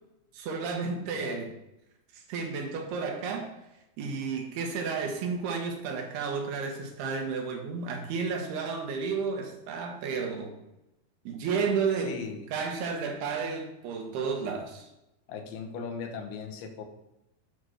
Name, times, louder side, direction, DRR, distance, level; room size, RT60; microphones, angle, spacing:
voice 1, 0.3-1.5 2.3-3.5 4.0-10.5 11.3-12.2 12.5-14.9, right 5 dB, 85° right, 3 dB, 3.3 m, -32 dB
voice 2, 1.2-1.5 12.0-12.5 15.3-16.9, left 5 dB, 80° left, 4 dB, 3.0 m, -38 dB
9.8 x 4.6 x 6.3 m, 0.90 s
omnidirectional pair, 4.5 m